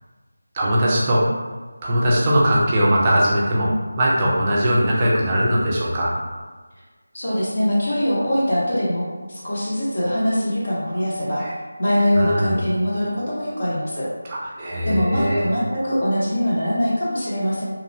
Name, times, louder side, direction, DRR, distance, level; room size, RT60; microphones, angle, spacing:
voice 1, 0.5-1.3 1.8-6.2 11.4-11.5 12.1-12.6 14.3-15.4, equal, 20° right, -6 dB, 0.4 m, -20 dB
voice 2, 7.1-11.4 11.8-14.1 14.8-17.6, equal, 50° left, -7 dB, 0.7 m, -22 dB
2.8 x 2.1 x 2.7 m, 1.3 s
figure-of-eight pair, 170°, 0 cm